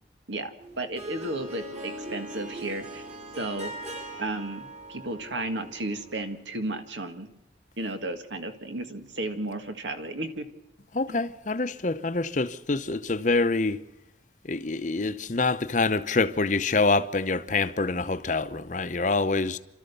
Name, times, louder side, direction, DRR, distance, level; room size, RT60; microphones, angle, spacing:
Harp, 0.6-6.4, right 1 dB, 35° right, 3.4 m, -41 dB
voice 1, 0.8-3.0 3.4-3.7 4.2-7.3 7.8-10.5 11.1-11.2, right 2 dB, 80° right, 1.8 m, -33 dB
voice 2, 10.9-13.8 14.4-19.6, left 3 dB, 40° left, 0.8 m, -26 dB
29.0 x 13.0 x 6.9 m
head